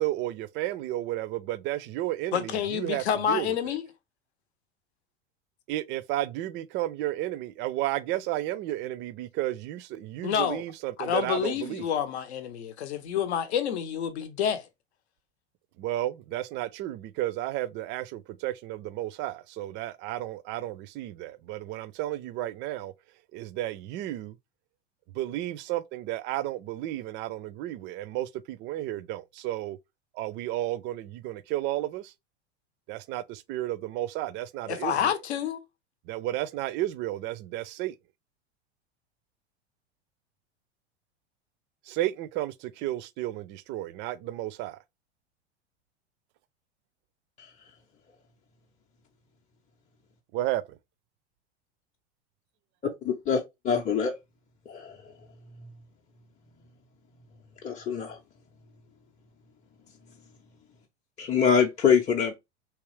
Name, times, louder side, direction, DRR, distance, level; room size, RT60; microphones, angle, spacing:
voice 1, 0.0-3.7 5.7-11.9 15.8-22.9 23.3-24.4 25.1-29.8 30.1-32.1 32.9-35.2 36.1-37.9 41.9-44.8 50.3-50.8, right 15 dB, 35° right, 0.4 m, -32 dB
voice 2, 2.3-3.9 10.2-10.6 11.0-14.6 34.7-35.6, left 9 dB, 70° left, 0.8 m, -28 dB
voice 3, 53.0-53.4 53.6-54.1 54.7-55.0 57.6-58.2 61.2-62.3, left 7 dB, 20° left, 0.6 m, -24 dB
3.5 x 2.9 x 3.1 m
hypercardioid pair, 85°, 34 cm